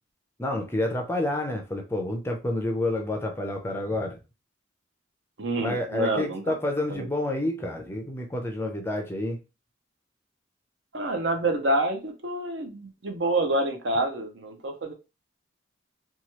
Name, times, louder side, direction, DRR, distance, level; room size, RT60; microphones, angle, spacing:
voice 1, 0.4-4.2 5.6-9.4, left 1 dB, 10° left, 3 dB, 0.4 m, -29 dB
voice 2, 5.4-6.4 6.9-7.1 10.9-14.9, right 2 dB, 65° right, 4 dB, 0.7 m, -27 dB
3.0 x 2.3 x 2.9 m, 0.29 s
head